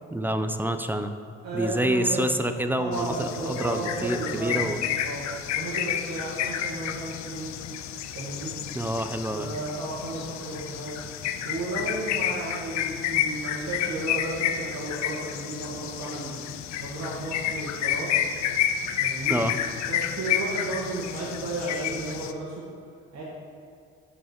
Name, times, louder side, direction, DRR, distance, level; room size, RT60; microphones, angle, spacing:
voice 1, 0.1-1.2 1.5-4.8 8.7-9.5 19.3-19.5, right 1 dB, 5° right, 8 dB, 0.4 m, -27 dB
voice 2, 1.4-2.3 2.7-5.2 5.5-7.5 8.1-8.6 9.3-10.9 11.4-16.3 16.8-18.3 18.8-19.4 19.9-22.6 23.1-23.2, right 2 dB, 60° right, -7 dB, 1.6 m, -33 dB
sound 1, 2.9-22.3, left 10 dB, 65° left, 0.5 m, -30 dB
5.6 x 4.8 x 5.9 m, 2.3 s
supercardioid pair, 55°, 30 cm